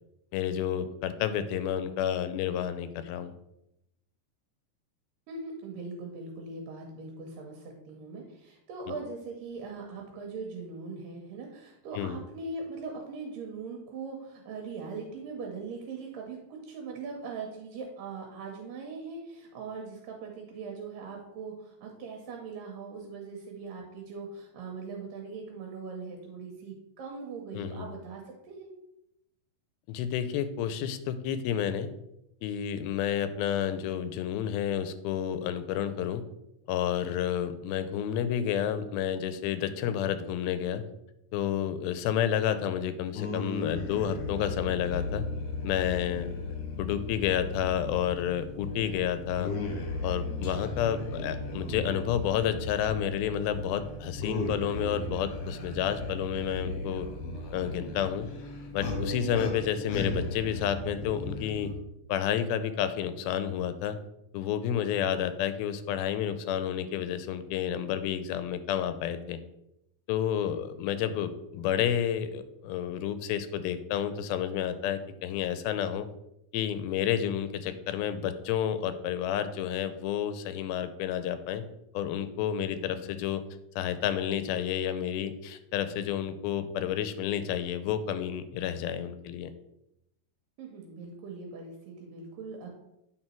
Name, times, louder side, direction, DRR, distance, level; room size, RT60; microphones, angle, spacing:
voice 1, 0.3-3.3 8.9-9.0 12.0-12.2 27.5-27.9 29.9-31.9 32.4-36.2 36.7-40.8 41.3-45.2 45.6-46.3 46.8-49.5 50.0-57.1 57.5-58.3 58.7-61.7 62.1-64.0 64.3-69.4 70.1-76.1 76.5-81.6 81.9-83.4 83.8-89.5, left 9 dB, 90° left, 11 dB, 2.4 m, -30 dB
voice 2, 5.3-28.7 57.3-57.7 70.5-70.6 90.6-92.7, right 4 dB, 75° right, 1 dB, 2.4 m, -41 dB
sound 1, 43.1-61.7, left 2 dB, 65° left, 1.7 m, -36 dB
8.9 x 4.0 x 4.4 m, 0.84 s
omnidirectional pair, 4.2 m